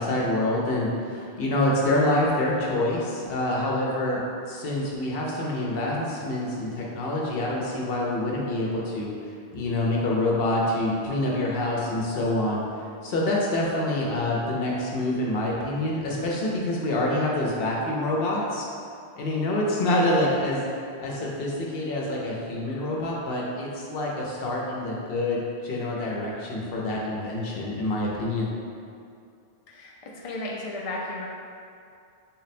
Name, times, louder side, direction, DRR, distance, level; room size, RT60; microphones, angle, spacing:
voice 1, 0.0-4.2 4.5-9.1 9.5-12.6 13.0-18.7 19.2-20.6 21.0-28.5, left 1 dB, 65° left, -3 dB, 0.8 m, -26 dB
voice 2, 29.7-31.3, left 2 dB, 50° left, -3 dB, 0.4 m, -34 dB
3.9 x 2.1 x 4.1 m, 2.5 s
omnidirectional pair, 1.1 m